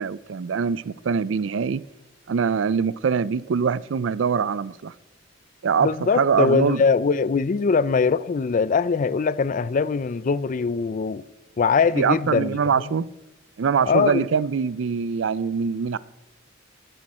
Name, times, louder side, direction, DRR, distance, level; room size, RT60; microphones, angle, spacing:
voice 1, 0.0-1.8 2.3-4.9 5.6-5.9 6.2-6.8 11.9-13.1 13.6-16.0, right 6 dB, 70° right, 0.4 m, -23 dB
voice 2, 5.8-11.2 11.6-12.8 13.9-14.3, left 5 dB, 45° left, 0.4 m, -22 dB
14.5 x 12.5 x 4.3 m
head